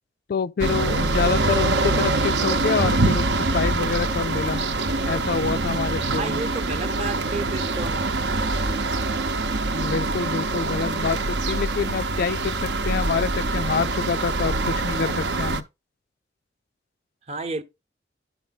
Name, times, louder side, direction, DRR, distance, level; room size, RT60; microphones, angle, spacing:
voice 1, 0.3-4.6 5.1-6.4 9.7-15.6, left 5 dB, 55° left, 0.3 m, -27 dB
sound 1, 0.6-15.6, right 3 dB, 70° right, 0.8 m, -24 dB
voice 2, 6.2-8.0 17.3-17.6, right 3 dB, 35° right, 0.8 m, -31 dB
11.0 x 5.1 x 4.0 m
head